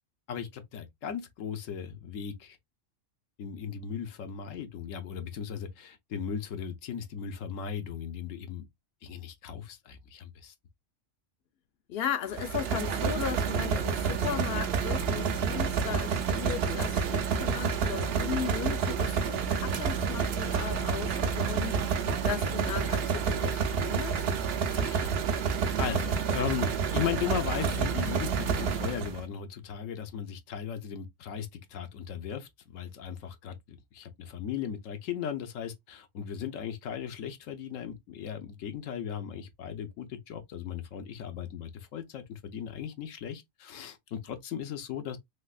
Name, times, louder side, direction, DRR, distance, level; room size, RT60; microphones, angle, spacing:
voice 1, 0.3-2.6 3.4-8.7 9.0-10.5 24.7-25.2 25.8-45.2, left 8 dB, 80° left, 1.0 m, -37 dB
voice 2, 11.9-21.8 22.2-24.3, left 8 dB, 60° left, 0.7 m, -36 dB
sound 1, 12.3-29.2, right 6 dB, 60° right, 0.7 m, -29 dB
3.4 x 2.9 x 2.3 m
omnidirectional pair, 1.3 m